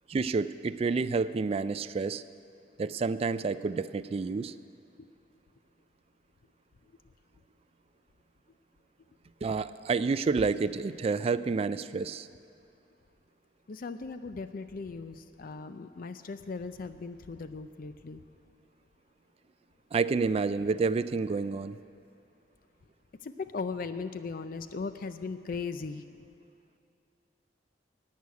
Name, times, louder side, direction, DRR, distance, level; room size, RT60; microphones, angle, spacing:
voice 1, 0.1-2.2 2.8-4.5 9.4-12.3 19.9-21.8, right 4 dB, 35° right, 13 dB, 0.3 m, -29 dB
voice 2, 13.7-18.2 23.2-26.0, left 4 dB, 50° left, 10 dB, 0.5 m, -38 dB
11.0 x 8.4 x 9.4 m, 2.6 s
head